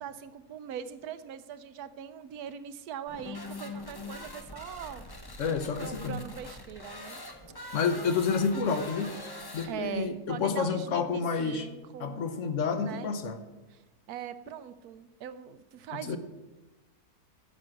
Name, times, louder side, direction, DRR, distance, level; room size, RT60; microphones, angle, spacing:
voice 1, 0.0-5.0 5.3-5.4 5.8-7.2 9.6-12.2 12.7-13.2 13.7-16.2, right 9 dB, 80° right, 12 dB, 1.1 m, -41 dB
sound 1, 3.1-10.1, left 2 dB, 20° left, 0.6 m, -43 dB
voice 2, 5.4-6.2 7.7-9.1 9.5-11.7 12.0-13.4 15.9-16.2, left 5 dB, 60° left, 9 dB, 1.1 m, -29 dB
9.6 x 5.9 x 7.7 m, 1.1 s
omnidirectional pair, 1.6 m